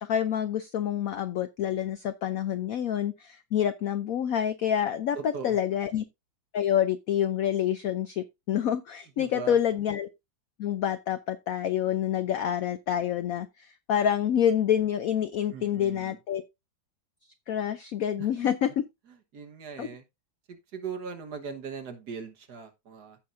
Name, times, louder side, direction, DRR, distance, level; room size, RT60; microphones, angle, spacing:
voice 1, 0.0-5.2 5.4-6.0 6.5-10.1 10.6-16.4 17.5-18.8 19.8-19.9, left 9 dB, 75° left, 0.8 m, -27 dB
voice 2, 5.1-5.6 9.2-9.6 15.5-16.2 18.2-18.5 19.1-20.0 20.5-23.2, right 6 dB, 60° right, 1.7 m, -40 dB
15.0 x 5.7 x 2.6 m
omnidirectional pair, 2.1 m